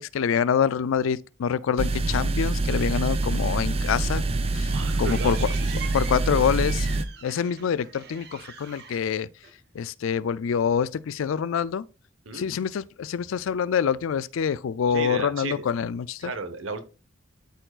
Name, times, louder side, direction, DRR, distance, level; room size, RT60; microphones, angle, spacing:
voice 1, 0.0-4.2 4.5-5.5 5.9-6.8 7.2-9.3 9.7-11.8 12.3-16.3, left 7 dB, 80° left, 0.4 m, -26 dB
sound 1, 1.8-7.0, right 2 dB, 30° right, 0.5 m, -25 dB
sound 2, 4.4-9.9, right 6 dB, 50° right, 1.1 m, -44 dB
voice 2, 4.7-5.8 6.3-6.4 12.2-12.5 14.9-15.7 16.2-16.8, right 3 dB, 75° right, 1.1 m, -34 dB
12.5 x 4.6 x 2.4 m
head